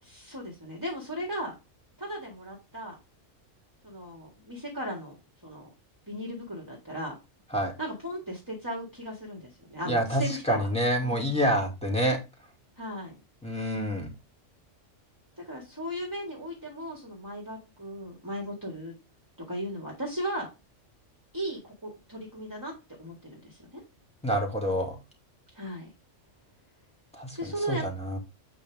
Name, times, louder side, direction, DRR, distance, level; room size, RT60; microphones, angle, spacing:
voice 1, 0.2-1.5 2.0-3.0 3.8-5.2 5.4-5.7 6.1-7.2 7.8-10.7 11.0-11.3 12.8-13.2 15.4-18.9 19.4-20.5 21.3-22.7 23.0-23.8 25.5-25.9 27.3-27.9, equal, 15° right, -2 dB, 2.0 m, -36 dB
voice 2, 9.9-12.2 13.4-14.1 24.2-25.0 27.1-28.2, equal, 5° left, 0 dB, 2.2 m, -27 dB
8.4 x 5.1 x 3.5 m, 0.26 s
omnidirectional pair, 1.3 m